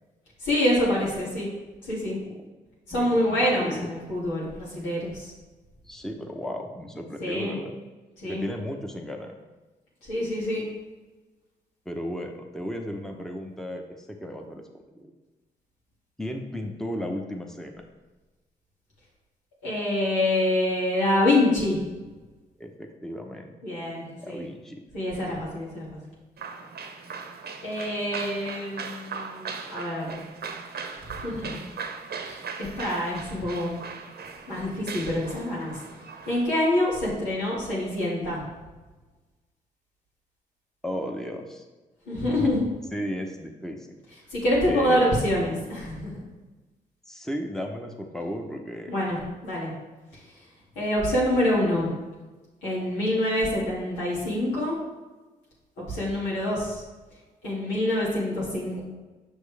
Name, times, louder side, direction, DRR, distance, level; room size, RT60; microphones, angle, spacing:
voice 1, 0.4-1.5 1.8-2.2 2.9-5.3 7.2-7.6 8.2-8.4 10.1-10.6 19.6-21.8 23.6-24.4 24.9-26.0 27.6-30.2 31.2-31.6 32.2-33.7 34.5-35.7 36.3-38.4 42.1-42.6 44.3-46.2 48.9-49.7 50.8-51.9 52.6-54.7 55.8-56.8 57.4-58.8, left 1 dB, 90° left, -6 dB, 2.3 m, -26 dB
voice 2, 2.9-3.9 5.9-7.8 8.2-9.3 11.8-14.7 14.9-15.1 16.2-17.8 22.6-23.5 24.2-24.8 40.8-41.6 42.9-44.0 44.7-45.1 47.1-48.9, equal, ahead, 2 dB, 1.0 m, -34 dB
sound 1, 26.4-36.6, right 5 dB, 60° right, 0.8 m, -39 dB
6.4 x 6.2 x 3.4 m, 1.2 s
hypercardioid pair, 40°, 19 cm